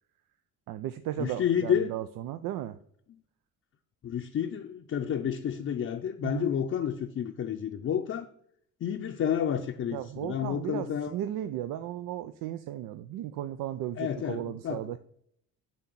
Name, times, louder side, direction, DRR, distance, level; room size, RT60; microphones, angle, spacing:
voice 1, 0.7-2.8 6.2-6.5 9.9-15.0, right 12 dB, 75° right, 10 dB, 0.5 m, -35 dB
voice 2, 1.2-1.9 4.0-8.3 8.8-11.1 14.0-15.0, left 8 dB, 40° left, 2 dB, 0.6 m, -30 dB
7.7 x 2.9 x 6.0 m, 0.66 s
cardioid pair, 85°, 34 cm